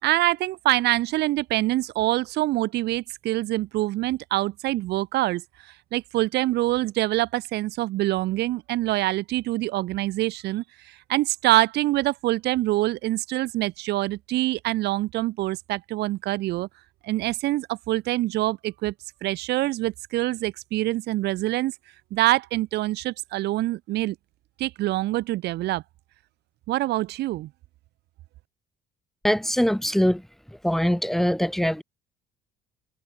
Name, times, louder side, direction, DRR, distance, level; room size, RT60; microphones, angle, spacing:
voice 1, 0.0-5.4 5.9-16.7 17.0-18.9 19.2-21.7 22.1-24.1 24.6-25.8 26.7-27.5, right 16 dB, 80° right, 4.4 m, -25 dB
voice 2, 29.2-30.2 30.6-31.8, equal, ahead, 7.6 m, -22 dB
cardioid pair, 110°, 17 cm